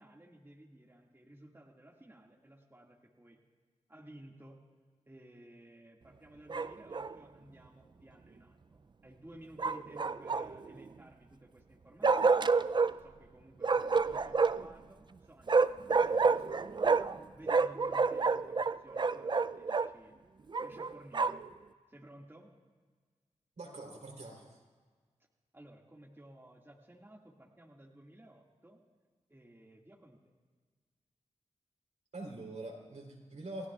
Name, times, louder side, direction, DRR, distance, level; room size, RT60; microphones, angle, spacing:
voice 1, 0.0-3.4 3.9-4.6 5.1-12.6 13.0-17.0 17.3-20.2 20.6-21.5 21.9-22.5 25.5-28.8 29.3-30.2, right 1 dB, 15° right, -2 dB, 2.1 m, -56 dB
Bark, 6.5-7.1 9.6-10.7 12.0-12.9 13.6-14.7 15.5-17.2 17.5-19.9 20.5-21.5, right 4 dB, 35° right, 0.4 m, -29 dB
voice 2, 23.6-24.6 32.1-33.7, right 2 dB, 70° right, -1 dB, 3.6 m, -44 dB
29.0 x 16.0 x 2.4 m, 1.5 s
cardioid pair, 60°, 13 cm